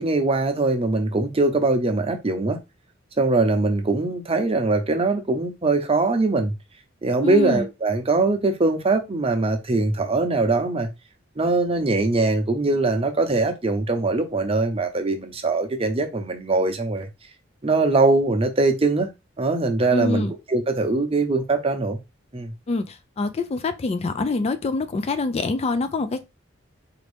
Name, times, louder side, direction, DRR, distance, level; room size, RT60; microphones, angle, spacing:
voice 1, 0.0-2.6 3.2-6.5 7.0-10.9 11.4-17.1 17.6-19.1 19.4-22.0 22.3-22.5, right 3 dB, 30° right, 0.7 m, -22 dB
voice 2, 7.2-7.7 19.9-20.3 22.7-26.3, left 3 dB, 30° left, 0.3 m, -25 dB
4.1 x 2.6 x 3.3 m
head